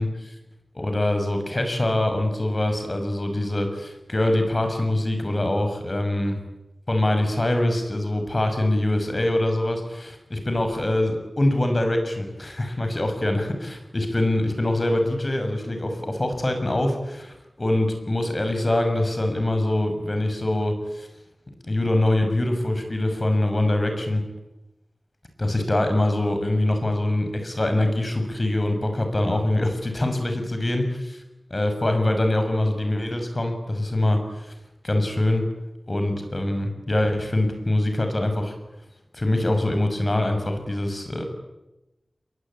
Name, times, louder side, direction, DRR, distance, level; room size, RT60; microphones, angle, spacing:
voice 1, 0.0-0.3 0.7-6.4 6.9-21.1 21.6-24.2 25.4-30.8 31.5-34.5 34.8-35.4 35.9-38.5 39.1-41.2, left 1 dB, 40° left, 6 dB, 6.2 m, -24 dB
28.5 x 22.5 x 8.8 m, 0.98 s
wide cardioid pair, 65°, 0 cm